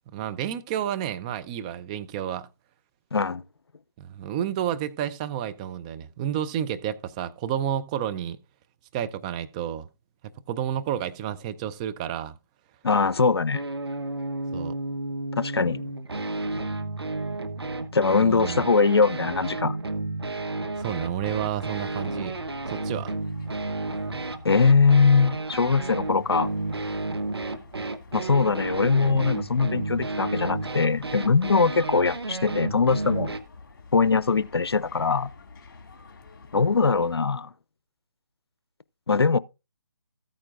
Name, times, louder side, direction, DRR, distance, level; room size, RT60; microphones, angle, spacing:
voice 1, 0.1-2.5 4.0-8.4 8.9-9.9 10.5-12.4 14.5-14.7 18.2-18.7 20.8-22.3 22.7-23.1, right 10 dB, 15° right, 0.5 m, -30 dB
voice 2, 3.1-3.4 12.8-13.6 15.4-15.9 17.9-19.8 24.4-26.5 28.1-33.3 33.9-35.3 36.5-37.5 39.1-39.4, left 4 dB, 85° left, 0.5 m, -21 dB
sound 1, 13.5-33.4, right 2 dB, 85° right, 1.1 m, -32 dB
sound 2, 20.8-37.2, left 4 dB, 55° left, 2.3 m, -49 dB
14.5 x 8.8 x 2.5 m
figure-of-eight pair, 145°, 13 cm